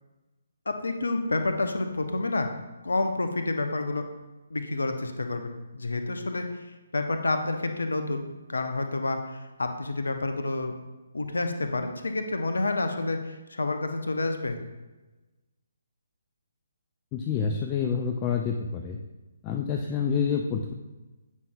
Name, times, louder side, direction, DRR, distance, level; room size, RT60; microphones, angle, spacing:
voice 1, 0.7-2.5 2.8-4.1 4.5-6.6 6.9-10.8 11.1-14.6, left 2 dB, 65° left, 6 dB, 0.6 m, -29 dB
voice 2, 17.1-19.0 19.4-20.7, left 6 dB, 20° left, 2 dB, 0.4 m, -28 dB
8.3 x 5.3 x 2.2 m, 1.1 s
figure-of-eight pair, 135°, 0 cm